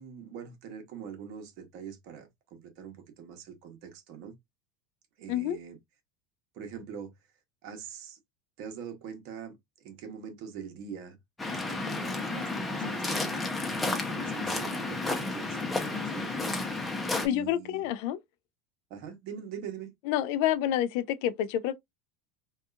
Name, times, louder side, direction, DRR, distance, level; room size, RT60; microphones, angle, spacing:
voice 1, 0.0-4.3 5.2-5.8 6.5-7.1 7.6-8.2 8.6-11.2 11.5-16.3 17.2-17.9 18.9-19.9, right 7 dB, 60° right, 1.0 m, -43 dB
Waves surf, 11.4-17.3, left 3 dB, 10° left, 0.7 m, -32 dB
voice 2, 17.2-18.2 20.1-21.8, left 11 dB, 65° left, 0.3 m, -28 dB
2.7 x 2.3 x 2.3 m
supercardioid pair, 120°, 0 cm